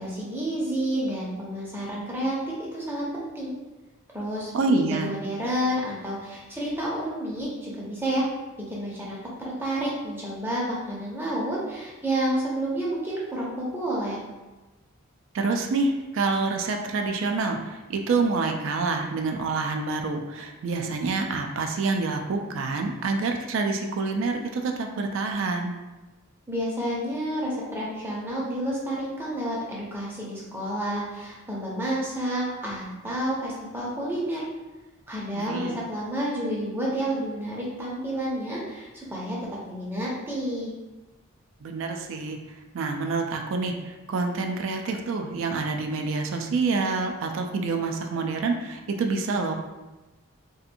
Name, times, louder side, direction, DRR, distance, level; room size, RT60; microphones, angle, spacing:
voice 1, 0.0-3.5 4.1-8.3 8.7-9.2 9.6-14.2 26.5-34.4 35.1-39.4 39.6-40.7, right 1 dB, 10° right, -5 dB, 0.5 m, -30 dB
voice 2, 4.5-5.1 15.3-25.7 35.3-35.8 41.6-42.4 42.7-49.5, right 3 dB, 60° right, 3 dB, 0.3 m, -27 dB
2.7 x 2.4 x 2.5 m, 1.2 s
head